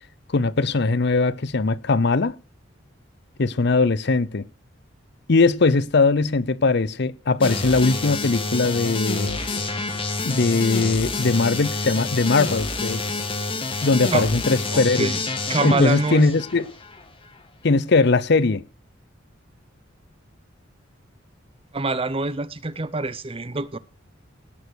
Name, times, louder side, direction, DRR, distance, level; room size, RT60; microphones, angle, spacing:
voice 1, 0.3-2.4 3.4-4.4 5.3-9.4 10.2-13.0 13.8-15.1 15.6-16.7 17.6-18.6, left 3 dB, 55° left, 0.7 m, -20 dB
sound 1, 7.4-17.0, left 3 dB, 25° left, 1.9 m, -28 dB
voice 2, 14.7-15.2 15.5-16.3 21.7-23.8, right 3 dB, 30° right, 0.7 m, -25 dB
18.0 x 6.8 x 6.3 m
head